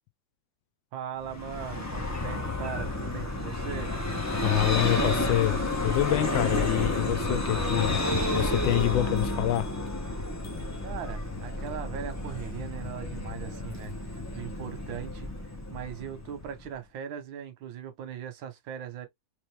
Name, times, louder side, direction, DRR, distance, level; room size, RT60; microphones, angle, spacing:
voice 1, 0.9-3.9 10.8-19.1, right 9 dB, 85° right, 1.7 m, -39 dB
Vehicle, 1.2-16.7, left 2 dB, 15° left, 0.5 m, -31 dB
voice 2, 4.4-8.0 8.3-9.7, left 16 dB, 90° left, 1.4 m, -26 dB
3.6 x 3.2 x 3.2 m
omnidirectional pair, 2.1 m